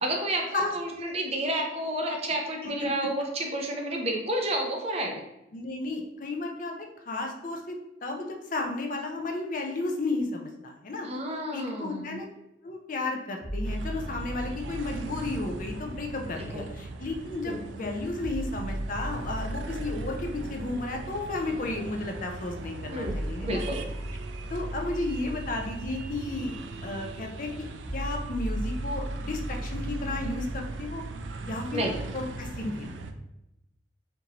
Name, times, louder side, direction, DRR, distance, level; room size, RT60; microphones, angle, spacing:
voice 1, 0.0-5.2 11.0-12.2 16.4-16.6 17.5-17.6 22.9-23.8 31.7-32.0, right 1 dB, 35° right, 1 dB, 0.6 m, -30 dB
voice 2, 5.5-6.7 7.1-11.1 11.5-12.3 12.6-23.6 24.5-31.0 31.4-31.9 32.1-32.9, left 2 dB, 45° left, 3 dB, 0.5 m, -33 dB
sound 1, 13.4-17.4 18.2-32.2, right 1 dB, ahead, 1.2 m, -38 dB
sound 2, 13.6-33.1, right 3 dB, 75° right, 0.4 m, -40 dB
4.5 x 2.6 x 2.8 m, 0.88 s
head